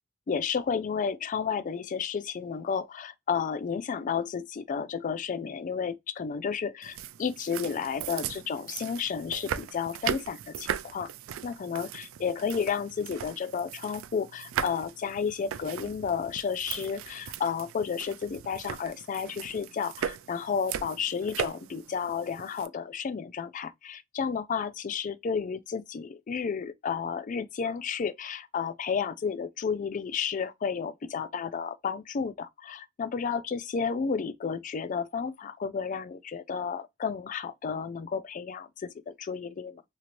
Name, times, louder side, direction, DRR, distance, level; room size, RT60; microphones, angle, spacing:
voice 1, 0.3-11.1 11.4-39.8, left 6 dB, 40° left, 0.3 m, -32 dB
sound 1, 6.8-22.7, right 9 dB, 80° right, 0.3 m, -38 dB
3.0 x 2.8 x 2.4 m
head